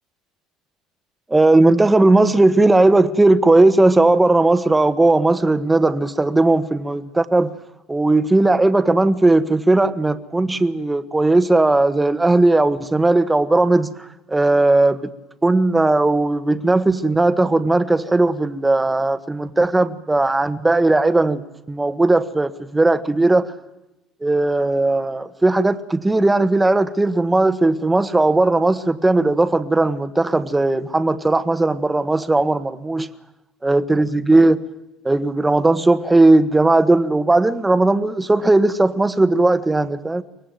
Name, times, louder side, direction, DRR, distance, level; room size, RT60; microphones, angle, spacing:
voice 1, 1.3-7.5 7.9-13.9 14.3-15.0 15.4-23.5 24.2-33.1 33.6-34.6 35.0-40.2, right 2 dB, 10° right, 1.4 m, -17 dB
24.0 x 18.0 x 9.3 m
supercardioid pair, 100°, 0 cm